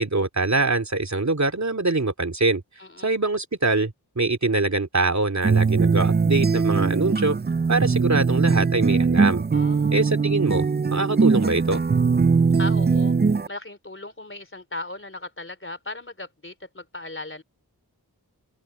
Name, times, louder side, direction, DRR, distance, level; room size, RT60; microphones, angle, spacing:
voice 1, 0.0-2.6 3.0-7.4 7.7-9.4 9.9-11.8, right 3 dB, 45° right, 2.8 m, -23 dB
voice 2, 2.8-3.1 9.5-10.0 12.6-13.2 13.5-17.4, left 2 dB, 30° left, 3.5 m, -37 dB
sound 1, 5.4-13.5, right 5 dB, 25° right, 0.5 m, -21 dB
open air
wide cardioid pair, 55°, 40 cm